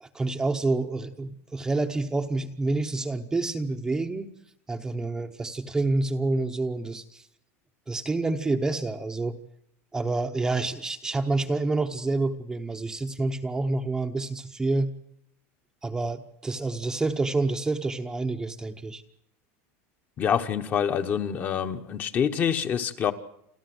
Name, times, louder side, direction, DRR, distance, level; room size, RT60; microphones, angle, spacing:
voice 1, 0.0-4.3 4.7-7.3 7.9-9.4 9.9-14.9 15.8-19.0, right 2 dB, 10° right, 5 dB, 0.8 m, -28 dB
voice 2, 20.2-23.1, left 8 dB, 25° left, 8 dB, 1.1 m, -26 dB
28.5 x 12.5 x 7.8 m, 0.75 s
supercardioid pair, 170°, 7 cm